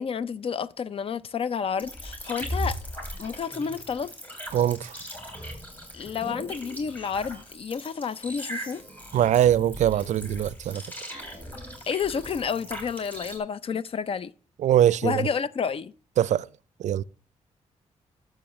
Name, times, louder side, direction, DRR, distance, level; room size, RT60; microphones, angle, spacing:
voice 1, 0.0-2.8 3.2-4.1 5.9-8.8 11.9-14.3 15.0-15.9, left 6 dB, 50° left, 0.5 m, -30 dB
sound 1, 1.8-13.4, equal, 15° left, 3.2 m, -38 dB
voice 2, 4.5-4.9 9.1-10.8 14.6-15.1 16.2-16.4 16.8-17.0, right 11 dB, 75° right, 0.4 m, -22 dB
12.0 x 7.5 x 3.0 m
cardioid pair, 110°, 12 cm